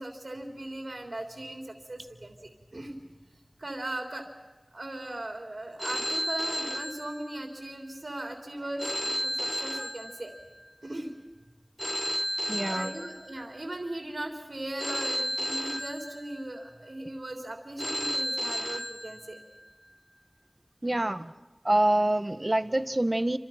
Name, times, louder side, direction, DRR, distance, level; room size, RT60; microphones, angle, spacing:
voice 1, 0.0-3.0 3.6-4.3 4.7-10.3 10.8-11.1 12.2-19.4, right 1 dB, 80° right, 3 dB, 3.5 m, -38 dB
Telephone, 5.8-7.7 8.8-10.7 11.8-13.7 14.8-16.7 17.8-19.7, equal, 10° left, 1.5 m, -33 dB
voice 2, 12.5-13.0 20.8-21.3 21.6-23.4, right 1 dB, 45° right, 11 dB, 1.4 m, -26 dB
29.0 x 27.0 x 5.9 m, 1.2 s
wide cardioid pair, 45°, 0 cm